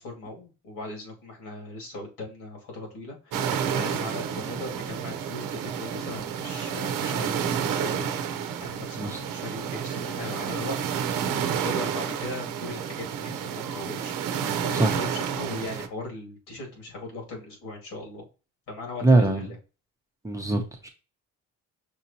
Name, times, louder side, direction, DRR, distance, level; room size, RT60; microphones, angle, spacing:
voice 1, 0.0-10.8 11.2-14.1 14.4-18.3 18.7-19.6, left 2 dB, 85° left, 2.3 m, -39 dB
sound 1, 3.3-15.9, right 8 dB, 75° right, 0.7 m, -30 dB
voice 2, 19.0-19.5 20.2-20.9, right 2 dB, 10° right, 0.7 m, -22 dB
6.1 x 2.8 x 2.7 m
cardioid pair, 155°, 33 cm